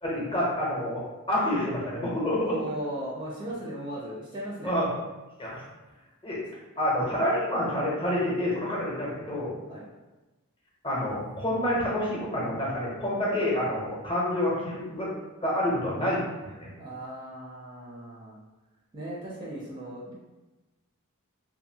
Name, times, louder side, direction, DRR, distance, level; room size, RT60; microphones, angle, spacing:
voice 1, 0.0-2.6 4.6-4.9 5.4-5.6 6.2-6.4 6.8-9.5 10.8-15.1 15.4-16.7, left 1 dB, 25° left, -5 dB, 0.8 m, -28 dB
voice 2, 2.4-4.8 9.7-9.9 16.8-18.4 18.9-20.1, right 1 dB, 20° right, -5 dB, 0.5 m, -37 dB
2.6 x 2.5 x 2.7 m, 1.1 s
head